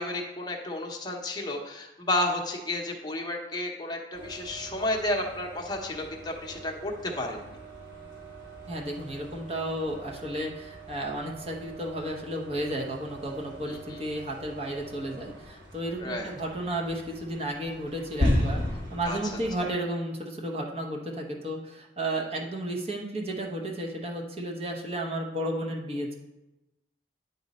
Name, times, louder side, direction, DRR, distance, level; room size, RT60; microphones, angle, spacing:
voice 1, 0.0-7.5 13.7-14.0 16.0-16.3 19.0-19.2 19.6-19.7, left 1 dB, 20° left, 1 dB, 0.8 m, -32 dB
sound 1, 4.1-19.6, left 1 dB, 85° right, 2.8 m, -36 dB
voice 2, 8.7-26.1, right 1 dB, 30° right, 0 dB, 0.8 m, -33 dB
9.6 x 4.0 x 4.1 m, 0.97 s
head